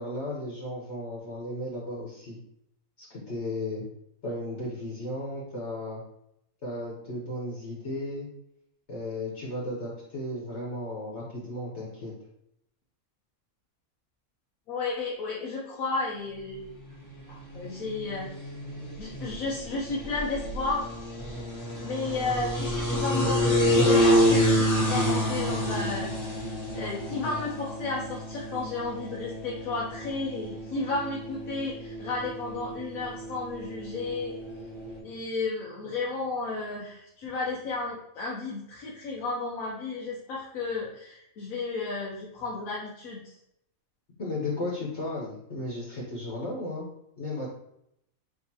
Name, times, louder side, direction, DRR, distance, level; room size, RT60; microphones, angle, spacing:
voice 1, 0.0-2.4 3.0-3.8 4.2-6.0 6.6-8.3 8.9-12.1 44.2-46.9 47.2-47.5, left 1 dB, 55° left, -6 dB, 1.3 m, -35 dB
voice 2, 14.7-16.7 17.3-18.5 19.0-20.9 21.8-26.4 26.7-34.3 35.0-43.3, left 3 dB, 80° left, -4 dB, 1.2 m, -33 dB
sound 1, 16.9-35.0, equal, 15° left, 1.3 m, -29 dB
4.6 x 3.2 x 2.8 m, 0.77 s
omnidirectional pair, 1.5 m